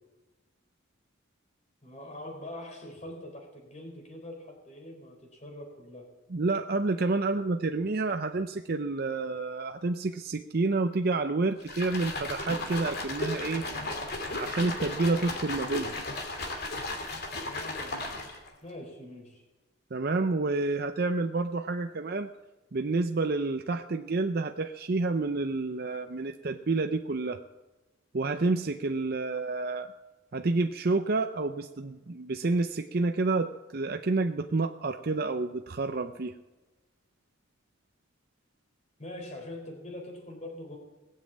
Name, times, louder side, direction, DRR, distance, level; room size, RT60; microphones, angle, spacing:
voice 1, 1.8-6.1 17.3-18.0 18.6-19.4 39.0-40.8, left 1 dB, 35° left, 2 dB, 4.0 m, -43 dB
voice 2, 6.3-13.6 14.4-16.0 19.9-22.3 22.7-27.4 28.1-29.9 30.3-36.3, right 3 dB, 50° right, 6 dB, 0.6 m, -29 dB
sound 1, 11.6-18.5, left 2 dB, 50° left, 2.7 m, -35 dB
19.0 x 7.4 x 8.6 m, 1.1 s
head